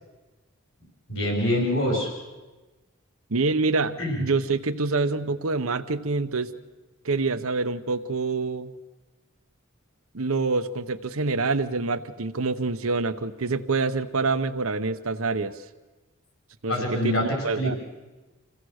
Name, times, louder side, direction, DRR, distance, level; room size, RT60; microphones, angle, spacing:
voice 1, 1.1-2.1 4.0-4.2 16.7-17.7, left 1 dB, 75° left, 1 dB, 5.0 m, -25 dB
voice 2, 3.3-6.5 7.0-8.7 10.1-15.5 16.6-17.1 17.4-17.7, right 3 dB, 85° right, 10 dB, 0.9 m, -26 dB
27.0 x 16.0 x 6.5 m, 1.2 s
head